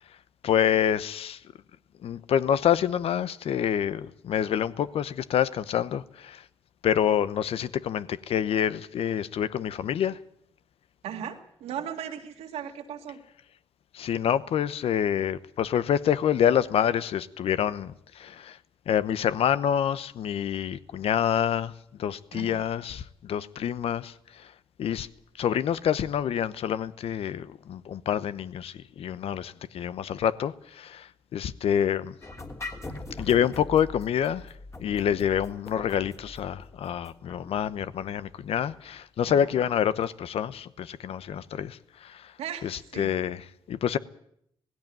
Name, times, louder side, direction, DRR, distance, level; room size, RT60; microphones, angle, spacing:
voice 1, 0.4-1.4 2.0-6.4 6.8-10.2 13.9-18.6 18.9-21.7 22.0-24.5 24.8-25.1 25.4-32.1 33.2-34.5 34.8-42.3 42.6-44.0, left 9 dB, 70° left, 0.9 m, -27 dB
voice 2, 11.0-13.2 22.3-22.6 39.3-39.5 42.4-43.1, right 9 dB, 80° right, 2.1 m, -37 dB
sound 1, 32.2-39.0, left 2 dB, 30° left, 3.2 m, -42 dB
17.5 x 16.5 x 9.0 m
supercardioid pair, 55°, 10 cm